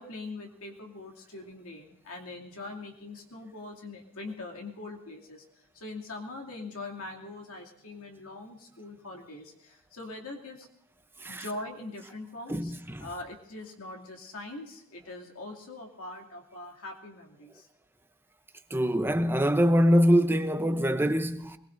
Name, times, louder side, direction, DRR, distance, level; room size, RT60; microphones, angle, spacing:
voice 1, 0.0-10.7 11.3-12.7 13.0-17.7, left 2 dB, 70° left, 2.6 m, -42 dB
voice 2, 12.5-13.0 18.7-21.6, equal, 10° right, 0.7 m, -24 dB
24.0 x 21.0 x 2.6 m
head